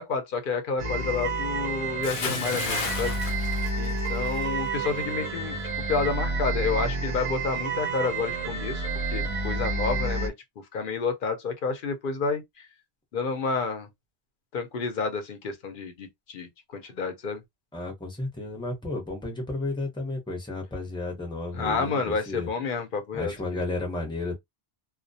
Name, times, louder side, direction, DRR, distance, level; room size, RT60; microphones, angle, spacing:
voice 1, 0.0-3.2 3.8-5.6 5.9-8.8 9.1-10.3 10.7-12.4 13.1-13.9 14.5-17.4 21.5-23.3, left 4 dB, 60° left, 0.7 m, -29 dB
sound 1, 0.8-10.3, right 3 dB, 45° right, 0.4 m, -29 dB
Bathtub (filling or washing) / Splash splatter, 2.0-4.5 4.8-5.1, left 4 dB, 85° left, 0.9 m, -33 dB
voice 2, 17.7-22.5 23.1-24.4, left 2 dB, 5° left, 0.7 m, -33 dB
2.3 x 2.1 x 2.6 m
omnidirectional pair, 1.1 m